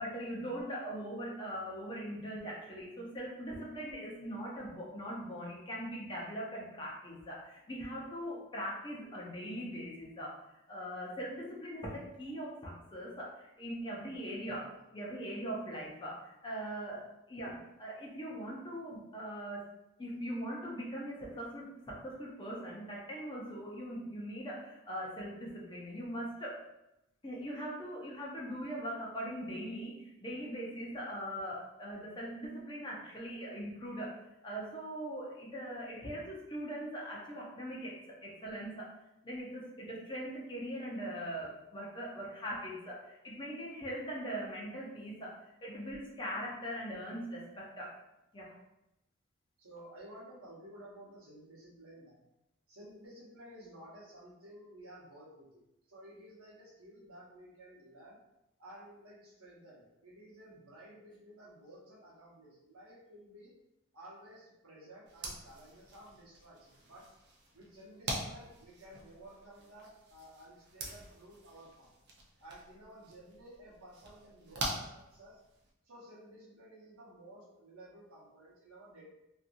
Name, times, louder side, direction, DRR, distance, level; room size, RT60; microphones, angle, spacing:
voice 1, 0.0-10.4 10.7-19.6 20.0-26.6 27.2-38.9 39.2-47.9 48.3-48.6, equal, 20° left, -4 dB, 0.6 m, -41 dB
voice 2, 49.6-52.2 52.7-55.6 55.9-58.2 58.6-63.5 63.9-67.1 67.5-71.9 72.4-75.4 75.8-79.0, right 1 dB, 80° right, -5 dB, 1.0 m, -54 dB
sound 1, 65.1-75.7, right 2 dB, 50° right, 0.5 m, -45 dB
2.8 x 2.5 x 2.5 m, 0.90 s
head